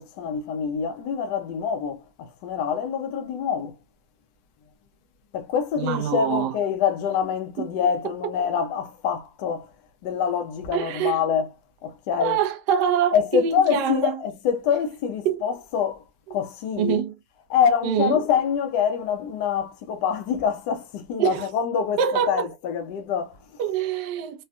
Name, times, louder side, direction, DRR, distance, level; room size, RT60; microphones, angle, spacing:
voice 1, 0.0-3.8 5.3-9.7 10.0-11.5 11.8-12.4 13.1-16.0 16.3-17.0 17.5-22.0 22.3-23.6, left 7 dB, 65° left, 0.6 m, -25 dB
voice 2, 5.8-6.5 7.6-7.9 10.7-11.2 12.2-14.2 15.2-15.4 16.8-17.1 17.8-18.2 21.2-21.5 22.0-22.5 23.6-24.4, right 8 dB, 65° right, 0.7 m, -25 dB
3.1 x 2.5 x 2.2 m
supercardioid pair, 125°, 0 cm